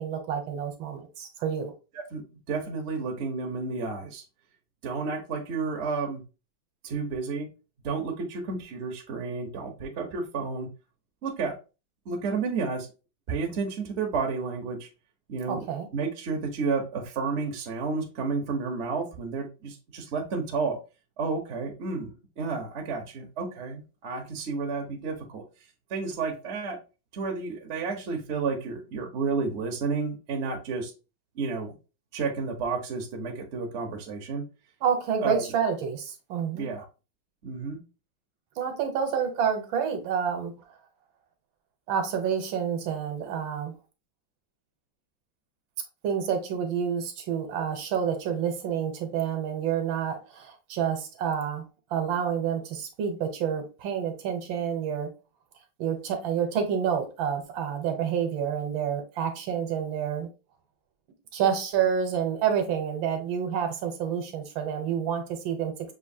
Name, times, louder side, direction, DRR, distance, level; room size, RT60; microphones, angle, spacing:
voice 1, 0.0-1.7 15.5-15.9 34.8-36.7 38.6-40.5 41.9-43.7 46.0-51.6 51.9-55.1 55.8-60.3 61.3-65.7, right 7 dB, 75° right, 1.6 m, -28 dB
voice 2, 2.1-4.2 4.8-6.2 6.8-7.5 7.8-10.7 11.2-11.6 12.0-12.9 13.3-14.9 15.3-15.6 15.9-20.8 21.2-22.1 22.4-25.4 25.9-26.8 27.1-30.9 31.3-31.7 32.1-34.4 35.2-35.4 36.5-36.8 37.4-37.8, right 4 dB, 50° right, 0.9 m, -31 dB
6.2 x 2.7 x 2.7 m
omnidirectional pair, 2.2 m